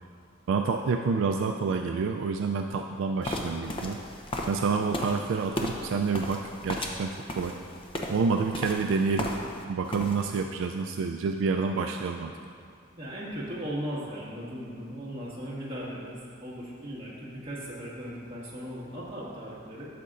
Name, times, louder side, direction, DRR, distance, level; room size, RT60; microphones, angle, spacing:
voice 1, 0.5-4.0 4.5-7.5 8.1-9.3 9.7-12.3, right 5 dB, 70° right, 4 dB, 0.3 m, -28 dB
sound 1, 3.2-9.6 9.9-10.4, left 1 dB, 25° left, 0.6 m, -35 dB
voice 2, 13.0-19.9, equal, 25° right, -7 dB, 1.8 m, -37 dB
12.0 x 6.7 x 2.5 m, 2.4 s
head